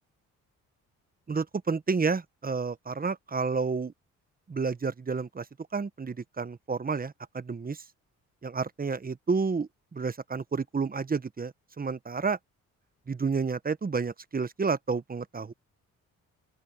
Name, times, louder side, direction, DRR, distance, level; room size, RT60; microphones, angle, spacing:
voice 1, 1.3-3.9 4.5-5.4 5.7-7.8 8.4-12.4 13.1-15.5, right 4 dB, 25° right, 1.2 m, -30 dB
open air
supercardioid pair, 60°, 32 cm